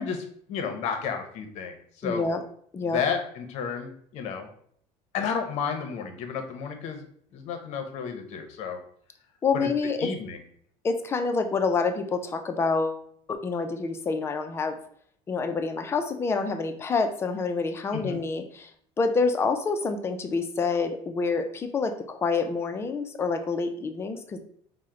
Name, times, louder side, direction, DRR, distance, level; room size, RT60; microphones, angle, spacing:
voice 1, 0.0-2.2 2.8-4.5 5.1-7.0 7.3-8.8 9.5-9.7 10.0-10.4 17.9-18.2, left 6 dB, 55° left, 6 dB, 0.6 m, -32 dB
voice 2, 2.0-2.4 2.7-3.0 9.4-10.1 10.8-13.0 13.3-14.8 15.3-18.7 19.0-24.4, left 4 dB, 20° left, 7 dB, 0.3 m, -27 dB
4.3 x 2.1 x 3.6 m, 0.62 s
cardioid pair, 155°, 14 cm